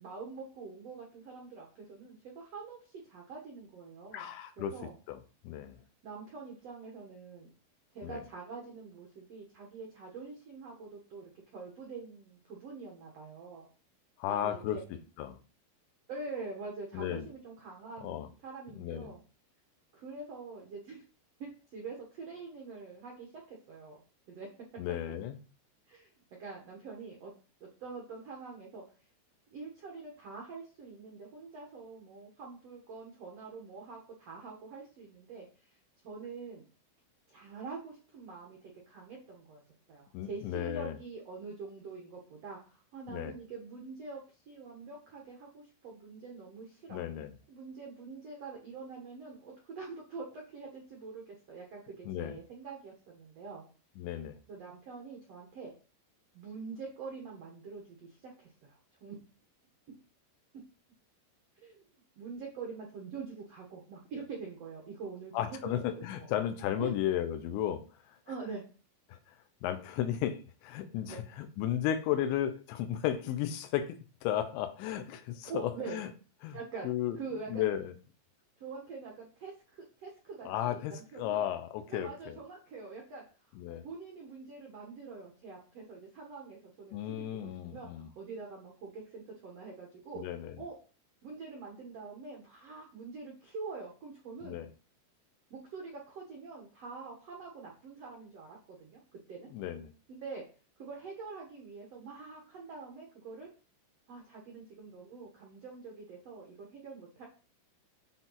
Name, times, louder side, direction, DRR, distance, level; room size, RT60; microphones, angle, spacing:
voice 1, 0.0-4.3 4.6-4.9 6.0-7.5 7.9-13.7 14.2-14.8 16.1-19.2 19.9-21.0 21.4-24.0 24.3-24.5 25.9-26.1 26.4-27.3 27.6-28.8 29.5-35.7 36.0-36.6 37.3-39.6 39.9-44.2 44.5-47.0 47.5-53.6 54.5-55.7 56.3-59.2 61.6-61.8 62.2-66.3 66.7-66.9 68.2-68.6 71.1-71.2 75.5-76.0 76.5-76.9 77.2-77.6 78.6-80.8 81.1-81.4 81.9-83.2 83.8-87.3 87.6-90.3 90.6-90.8 91.2-94.6 95.5-99.0 99.3-99.5 100.1-100.4 100.8-103.5 104.1-107.2, right 4 dB, 85° right, 1.4 m, -45 dB
voice 2, 4.1-5.8 8.0-8.2 14.2-14.8 15.2-15.4 16.9-17.3 18.0-18.3 18.8-19.1 24.8-25.4 40.1-41.0 43.1-43.4 46.9-47.4 52.1-52.4 54.0-54.4 65.3-67.8 69.1-69.4 69.6-74.0 74.2-76.1 76.4-76.6 76.8-77.2 77.5-77.9 80.5-82.4 83.6-83.8 86.9-88.1 90.2-90.6 94.4-94.7 99.5-99.9, left 11 dB, 80° left, 3.1 m, -34 dB
9.0 x 4.1 x 4.0 m
omnidirectional pair, 5.2 m